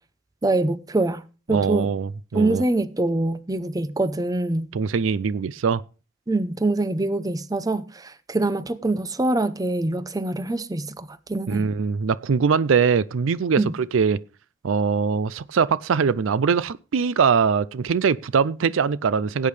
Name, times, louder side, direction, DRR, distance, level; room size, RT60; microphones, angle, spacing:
voice 1, 0.4-1.2 1.5-1.9 2.3-4.7 6.3-11.7 13.6-13.7, right 2 dB, 20° right, 0.7 m, -24 dB
voice 2, 1.5-2.6 4.7-5.8 11.5-13.6 13.9-14.2 14.6-19.5, right 6 dB, 80° right, 0.4 m, -22 dB
16.5 x 8.7 x 3.3 m
head